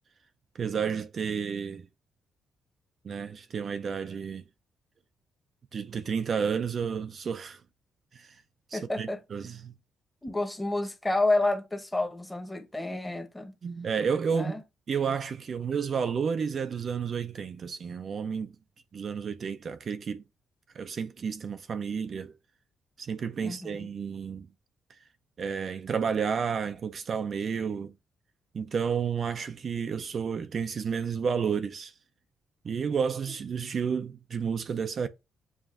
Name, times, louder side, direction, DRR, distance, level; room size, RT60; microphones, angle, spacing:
voice 1, 0.5-1.9 3.0-4.4 5.7-7.6 8.1-8.4 8.7-9.7 13.6-14.6 14.9-18.6 18.9-20.2 20.7-22.3 23.0-24.5 25.4-27.9 28.5-31.9 32.6-35.1, right 6 dB, 50° right, 0.4 m, -31 dB
voice 2, 8.7-9.2 10.2-13.5 14.3-14.6 23.4-23.9, left 2 dB, 10° left, 1.0 m, -29 dB
7.1 x 2.5 x 2.5 m
cardioid pair, 90°, 0 cm